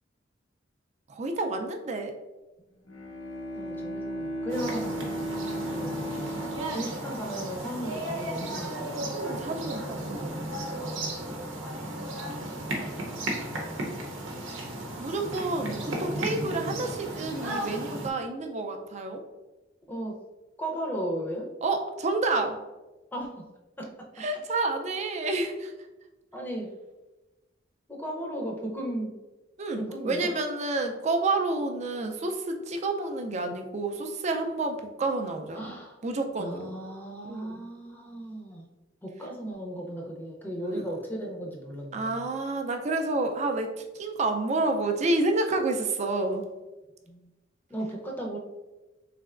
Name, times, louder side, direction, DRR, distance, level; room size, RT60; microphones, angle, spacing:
voice 1, 1.1-2.2 9.1-10.0 15.0-19.2 21.6-22.6 24.2-25.7 29.6-35.7 36.0-36.7 37.2-37.6 40.6-40.8 41.9-46.4, right 2 dB, 35° right, 4 dB, 0.4 m, -29 dB
Bowed string instrument, 2.9-8.1, equal, 85° left, 0.7 m, -36 dB
voice 2, 3.5-4.9 5.7-6.0 6.7-9.1 19.9-20.2 20.6-21.5 23.1-23.5 23.8-24.1 26.3-26.7 27.9-29.2 29.8-30.3 35.5-36.0 36.4-38.6 39.0-42.3 47.1-47.2 47.7-48.4, right 1 dB, 10° left, -1 dB, 0.6 m, -35 dB
sound 1, 4.5-18.1, right 1 dB, 85° right, 0.7 m, -34 dB
3.8 x 3.2 x 2.4 m, 1.1 s
head